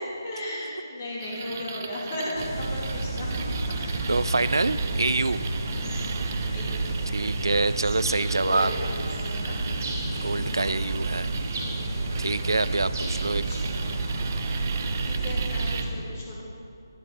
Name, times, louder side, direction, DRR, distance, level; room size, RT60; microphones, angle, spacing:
voice 1, 0.0-4.1 5.8-6.2 6.5-6.8 8.4-9.6 9.9-10.3 11.6-12.1 12.9-13.9 15.0-16.4, left 1 dB, 35° left, -4 dB, 2.7 m, -36 dB
sound 1, 1.2-15.9, right 6 dB, 30° right, 0.5 m, -39 dB
sound 2, 2.3-15.8, right 2 dB, 45° right, 2.2 m, -30 dB
voice 2, 4.1-5.4 7.1-8.7 10.1-11.3 12.2-13.4, right 3 dB, 85° right, 15 dB, 0.4 m, -26 dB
11.5 x 8.2 x 5.7 m, 2.5 s
figure-of-eight pair, 165°, 2 cm